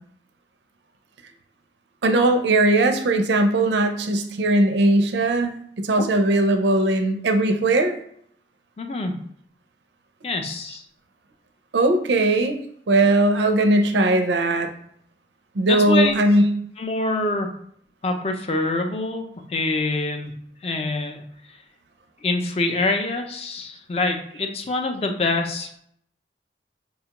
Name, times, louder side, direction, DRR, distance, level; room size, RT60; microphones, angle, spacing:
voice 1, 2.0-7.9 11.7-12.6 12.9-14.7 15.6-16.5, right 2 dB, 85° right, 7 dB, 0.5 m, -19 dB
voice 2, 8.8-9.2 10.2-10.8 15.7-16.1 16.8-17.5 18.0-20.3 20.6-21.2 22.2-25.8, left 3 dB, 35° left, 5 dB, 0.4 m, -25 dB
4.9 x 2.3 x 2.9 m, 0.67 s
head